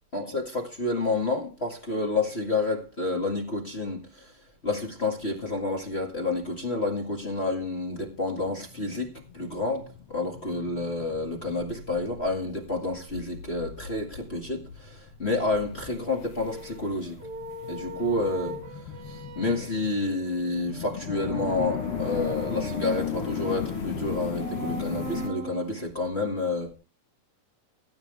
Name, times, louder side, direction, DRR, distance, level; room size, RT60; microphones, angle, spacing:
voice 1, 0.1-4.4 4.6-17.2 17.7-26.7, left 2 dB, 25° left, 1.3 m, -29 dB
sound 1, 8.1-25.3, left 8 dB, 65° left, 1.5 m, -37 dB
sound 2, 16.5-25.9, right 2 dB, 75° right, 0.9 m, -40 dB
16.5 x 9.0 x 3.4 m
omnidirectional pair, 4.1 m